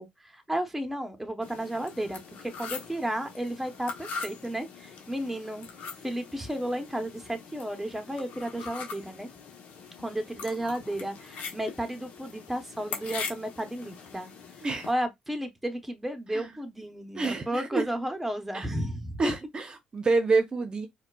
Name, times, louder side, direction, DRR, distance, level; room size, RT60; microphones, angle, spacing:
voice 1, 0.0-5.7 6.0-9.3 10.0-14.3 14.9-19.3, right 1 dB, 5° right, 0.9 m, -33 dB
sound 1, 1.4-14.9, left 5 dB, 70° left, 0.9 m, -42 dB
voice 2, 17.2-17.8 18.5-18.7 19.2-20.9, right 3 dB, 35° right, 0.8 m, -27 dB
4.3 x 2.3 x 2.3 m
supercardioid pair, 80°, 3 cm